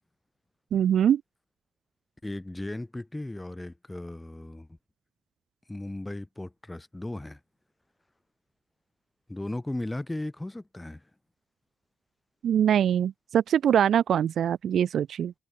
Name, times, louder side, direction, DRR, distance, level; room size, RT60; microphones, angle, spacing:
voice 1, 0.7-1.2 12.4-15.3, right 9 dB, 65° right, 0.4 m, -23 dB
voice 2, 2.2-4.7 5.7-7.4 9.3-11.0, left 1 dB, 10° left, 1.3 m, -36 dB
cardioid pair, 90°, 0 cm